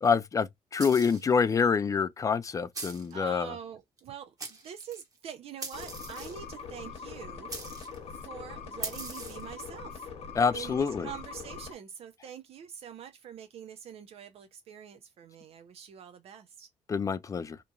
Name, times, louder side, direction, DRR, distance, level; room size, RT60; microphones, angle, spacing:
voice 1, 0.0-3.5 10.4-11.1 16.9-17.6, left 6 dB, 30° left, 0.4 m, -27 dB
sound 1, 0.8-1.3 2.7-3.1 4.0-4.1 4.4-5.0 5.6-6.5 7.5-8.0 8.8-9.5, right 3 dB, 30° right, 1.2 m, -40 dB
voice 2, 3.1-7.5 8.1-10.1 10.5-16.7, right 8 dB, 60° right, 0.5 m, -45 dB
sound 2, 5.7-11.7, left 5 dB, 65° left, 0.9 m, -42 dB
2.9 x 2.5 x 2.3 m
cardioid pair, 90°, 12 cm